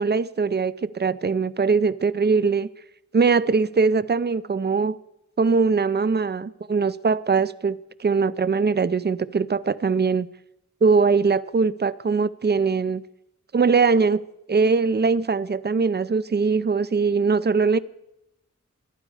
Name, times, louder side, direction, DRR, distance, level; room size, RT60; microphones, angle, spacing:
voice 1, 0.0-2.7 3.1-5.0 5.4-10.3 10.8-13.0 13.5-14.2 14.5-17.8, right 4 dB, 35° right, 0.4 m, -21 dB
13.0 x 11.0 x 4.8 m
wide cardioid pair, 45°, 30 cm